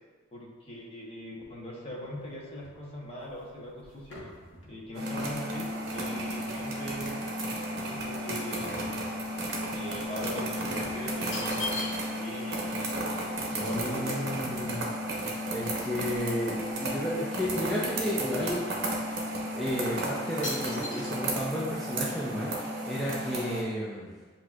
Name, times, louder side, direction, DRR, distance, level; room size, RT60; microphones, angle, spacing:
voice 1, 0.3-4.3 4.7-7.2 7.7-8.8 9.7-12.8 13.5-14.7, equal, 30° left, -4 dB, 0.9 m, -41 dB
sound 1, 1.8-7.0 7.4-9.6 9.9-10.1 10.8-12.4 12.7-12.8 13.0-15.1 15.7-15.8 16.0-16.8 17.1-18.3 18.9-19.0 19.6-19.9 20.4-21.1, left 2 dB, 60° left, 1.0 m, -43 dB
sound 2, 4.9-23.6, right 1 dB, 55° right, 0.8 m, -33 dB
voice 2, 13.5-14.9 15.2-22.6 22.9-24.1, equal, ahead, -8 dB, 0.5 m, -33 dB
7.9 x 2.7 x 2.4 m, 1.4 s
head